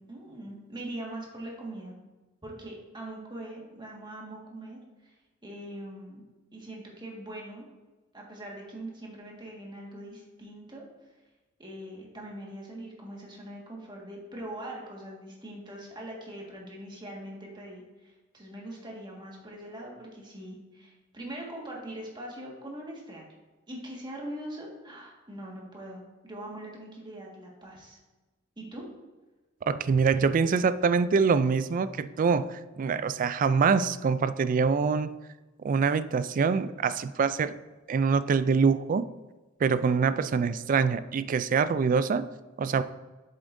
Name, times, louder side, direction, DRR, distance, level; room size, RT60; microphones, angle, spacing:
voice 1, 0.0-1.9 2.4-5.1 5.4-6.2 6.5-7.6 8.1-10.8 11.6-23.3 23.7-28.0 28.6-28.8, right 1 dB, 25° right, -2 dB, 1.7 m, -42 dB
voice 2, 29.7-35.1 35.6-37.5 37.9-39.1 39.6-42.2 42.6-42.8, right 5 dB, 40° right, 13 dB, 0.3 m, -25 dB
7.9 x 7.2 x 2.6 m, 1.2 s
head